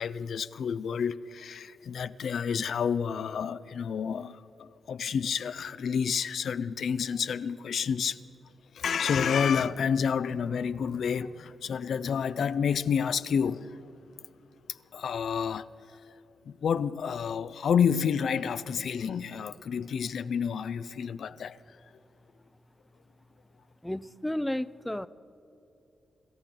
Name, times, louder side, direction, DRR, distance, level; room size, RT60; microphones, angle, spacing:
voice 1, 0.0-8.2 8.7-13.8 14.7-15.7 16.5-21.6, left 7 dB, 70° left, 0.4 m, -29 dB
voice 2, 23.8-25.1, left 1 dB, 5° left, 0.3 m, -32 dB
27.0 x 13.5 x 3.9 m
cardioid pair, 100°, 0 cm